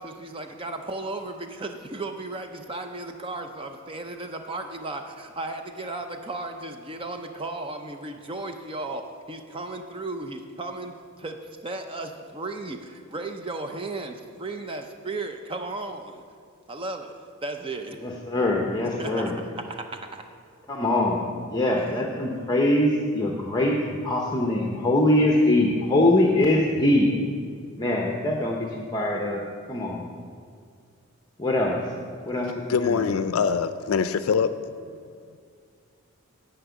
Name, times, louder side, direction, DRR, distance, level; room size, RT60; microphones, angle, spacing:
voice 1, 0.0-9.0 9.3-16.2 16.7-18.0 19.0-19.8 20.1-20.2, right 2 dB, 25° right, 5 dB, 0.5 m, -35 dB
voice 2, 18.0-19.4 20.7-27.1 27.8-29.4 29.7-30.0 31.4-31.9 32.2-33.1, left 1 dB, 20° left, 0 dB, 0.8 m, -23 dB
voice 3, 32.7-34.5, left 6 dB, 85° left, 11 dB, 0.4 m, -23 dB
9.8 x 5.8 x 8.1 m, 2.3 s
head